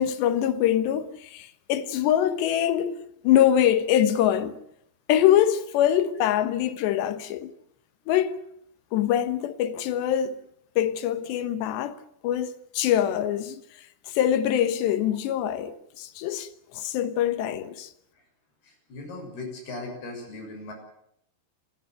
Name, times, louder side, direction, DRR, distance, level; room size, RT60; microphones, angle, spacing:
voice 1, 0.0-3.0 3.2-4.6 5.1-7.5 8.1-8.4 8.9-10.4 10.8-12.0 12.2-13.6 14.1-16.5 16.7-17.9, left 10 dB, 75° left, 3.4 m, -24 dB
voice 2, 18.6-20.7, left 2 dB, 60° left, 8.7 m, -38 dB
29.0 x 14.0 x 9.4 m
omnidirectional pair, 5.1 m